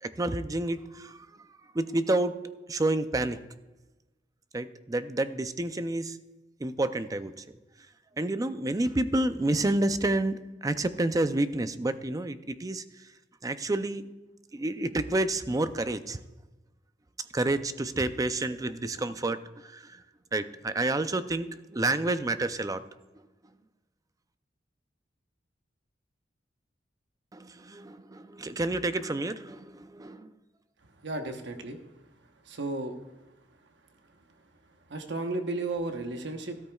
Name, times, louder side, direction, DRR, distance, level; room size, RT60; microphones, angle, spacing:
voice 1, 0.0-1.3 1.7-3.4 4.5-6.2 6.6-7.4 8.2-12.8 13.4-14.1 14.5-16.2 17.3-20.0 20.3-22.8 27.3-30.3, right 2 dB, 20° right, 11 dB, 0.5 m, -29 dB
voice 2, 31.0-31.8 32.4-32.9 34.9-36.6, right 2 dB, 65° right, 5 dB, 1.0 m, -33 dB
14.0 x 13.0 x 2.3 m, 1.1 s
head